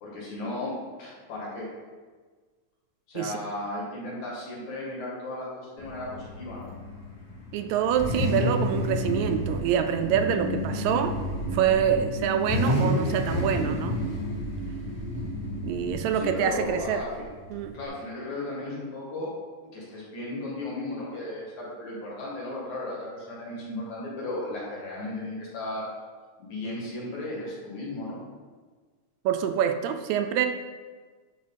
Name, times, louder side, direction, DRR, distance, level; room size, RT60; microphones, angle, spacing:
voice 1, 0.0-1.7 3.1-6.7 16.1-17.3 17.7-19.3 19.7-25.9 26.4-28.2, left 2 dB, 70° left, -5 dB, 3.5 m, -35 dB
Car / Idling / Accelerating revving vroom, 5.8-17.9, left 1 dB, 35° left, 2.3 m, -31 dB
voice 2, 7.5-11.2 11.5-14.0 15.6-17.0 17.5-17.8 29.3-30.5, right 8 dB, 80° right, 7 dB, 1.8 m, -26 dB
10.0 x 4.4 x 4.1 m, 1.4 s
omnidirectional pair, 3.4 m